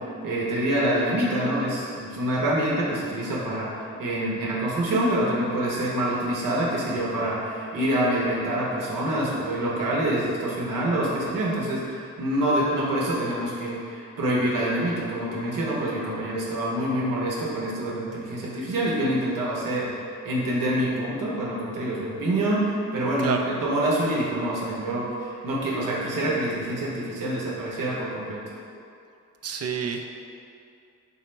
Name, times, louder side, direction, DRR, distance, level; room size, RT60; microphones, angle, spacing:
voice 1, 0.0-28.4, right 1 dB, 80° right, -4 dB, 0.9 m, -26 dB
voice 2, 29.4-30.1, right 7 dB, 50° right, 4 dB, 0.4 m, -28 dB
4.2 x 2.0 x 4.2 m, 2.5 s
cardioid pair, 60°, 32 cm